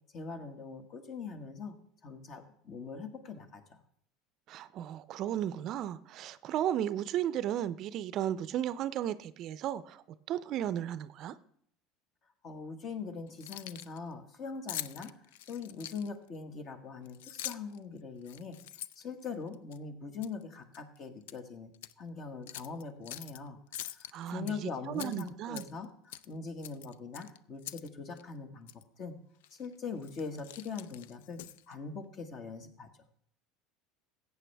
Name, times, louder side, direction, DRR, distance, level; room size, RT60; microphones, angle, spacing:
voice 1, 0.1-1.7 2.0-3.8 12.4-18.6 19.0-29.2 29.5-32.9, left 5 dB, 45° left, 7 dB, 1.5 m, -42 dB
voice 2, 4.5-11.3 24.1-25.6, right 11 dB, 50° right, 16 dB, 0.5 m, -35 dB
Keys jangling, 13.3-14.0 14.7-16.3 17.1-17.8 18.2-19.8 20.2-20.4 20.7-21.4 21.7-21.9 22.5-23.4 23.7-24.5 24.9-25.9 26.1-26.3 26.6-27.9 28.2-28.3 28.7-28.8 29.4-29.7 30.0-31.7, left 12 dB, 85° left, 0.4 m, -44 dB
14.5 x 8.4 x 3.4 m, 0.66 s
supercardioid pair, 110°, 0 cm